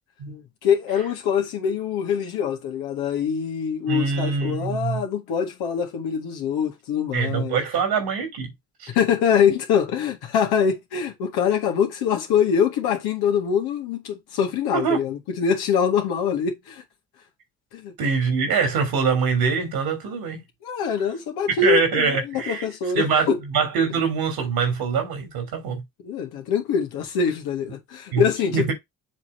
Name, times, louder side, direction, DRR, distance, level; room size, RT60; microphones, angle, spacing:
voice 1, 0.3-7.6 8.9-16.8 17.7-17.9 20.6-23.4 26.0-28.7, left 7 dB, 85° left, 1.8 m, -24 dB
voice 2, 3.9-5.0 7.1-8.5 8.8-8.9 14.7-15.0 18.0-20.4 21.6-22.6 22.9-25.8 28.1-28.2 28.5-28.7, right 5 dB, 85° right, 3.4 m, -23 dB
7.2 x 3.4 x 5.5 m
supercardioid pair, 50°, 37 cm